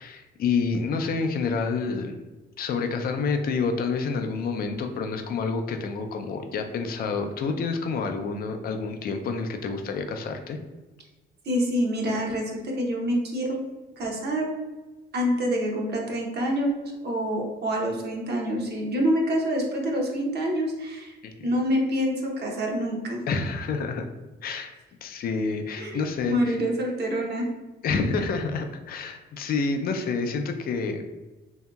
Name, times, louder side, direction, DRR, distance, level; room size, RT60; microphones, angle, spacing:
voice 1, 0.0-2.2 2.6-10.6 21.2-21.3 23.3-24.1 24.4-24.7 25.0-26.6 27.8-31.0, left 4 dB, 50° left, 6 dB, 0.4 m, -28 dB
voice 2, 11.5-13.6 14.0-14.5 15.1-16.7 17.0-21.2 21.4-23.2 25.8-27.5, equal, 55° right, 0 dB, 0.7 m, -26 dB
2.8 x 2.7 x 2.2 m, 1.1 s
cardioid pair, 90°, 20 cm